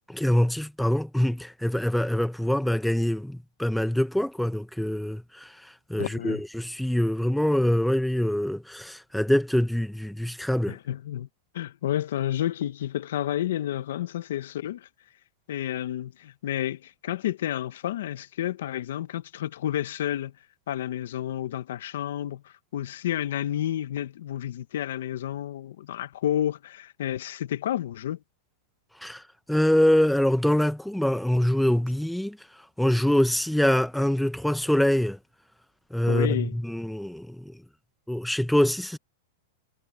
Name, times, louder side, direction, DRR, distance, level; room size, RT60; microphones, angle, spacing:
voice 1, 0.1-10.8 29.0-29.2 29.5-32.4 32.8-35.2 35.9-37.5 38.1-39.0, left 1 dB, ahead, 1.0 m, -24 dB
voice 2, 6.0-6.4 10.7-11.3 11.5-14.9 15.5-20.3 20.7-28.2 36.1-36.5, left 11 dB, 75° left, 1.2 m, -30 dB
supercardioid pair, 160°, 0 cm